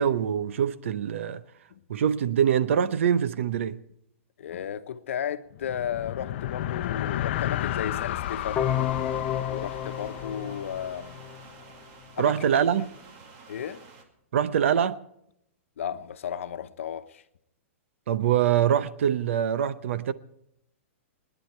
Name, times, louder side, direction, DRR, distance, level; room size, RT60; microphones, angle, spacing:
voice 1, 0.0-1.4 1.9-3.8 12.2-12.9 14.3-15.1 18.1-20.1, right 9 dB, 70° right, 0.8 m, -24 dB
voice 2, 4.4-8.7 9.5-11.2 12.2-12.3 13.5-13.8 15.8-17.2, left 9 dB, 75° left, 1.0 m, -34 dB
sound 1, 5.5-11.2, left 13 dB, 50° left, 0.7 m, -32 dB
sound 2, 8.2-14.0, right 4 dB, 40° right, 2.2 m, -50 dB
sound 3, 8.6-11.5, left 10 dB, 20° left, 0.5 m, -30 dB
25.5 x 10.0 x 4.5 m
hypercardioid pair, 155°, 7 cm